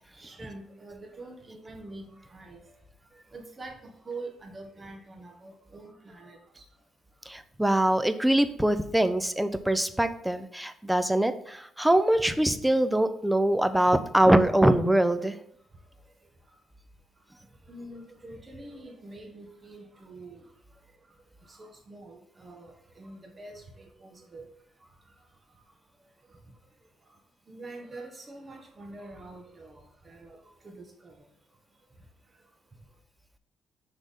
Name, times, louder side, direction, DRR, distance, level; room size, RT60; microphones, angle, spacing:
voice 1, 0.2-2.6 3.3-6.4 17.7-20.4 21.5-24.4 27.5-29.8 30.0-30.4 30.6-31.1, right 2 dB, 30° right, 4 dB, 1.3 m, -45 dB
voice 2, 7.3-15.3, right 1 dB, 5° right, 10 dB, 0.5 m, -23 dB
6.2 x 3.5 x 5.3 m, 0.70 s
cardioid pair, 90°, 0 cm